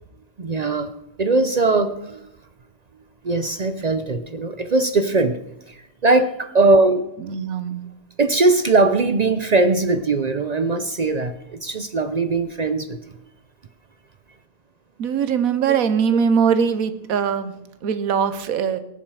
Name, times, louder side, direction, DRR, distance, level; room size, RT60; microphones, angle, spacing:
voice 1, 0.4-0.9 1.2-2.2 3.2-5.4 5.7-7.1 8.2-13.0, right 3 dB, 50° right, 10 dB, 0.5 m, -20 dB
voice 2, 7.3-7.8 15.0-17.5 17.8-18.8, right 7 dB, 85° right, 12 dB, 1.3 m, -21 dB
18.5 x 7.4 x 4.8 m, 0.87 s
omnidirectional pair, 1.4 m